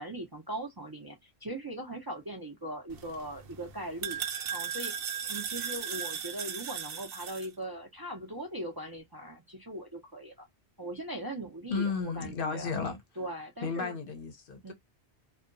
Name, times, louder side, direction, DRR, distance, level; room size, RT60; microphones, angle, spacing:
voice 1, 0.0-4.2 4.5-4.9 5.3-10.5 10.8-12.7 13.2-14.0 14.6-14.7, right 1 dB, 30° right, 0.5 m, -40 dB
sound 1, 2.9-7.5, right 8 dB, 70° right, 0.8 m, -37 dB
voice 2, 11.7-13.0 13.6-14.7, left 5 dB, 60° left, 0.8 m, -33 dB
2.7 x 2.2 x 2.5 m
omnidirectional pair, 1.1 m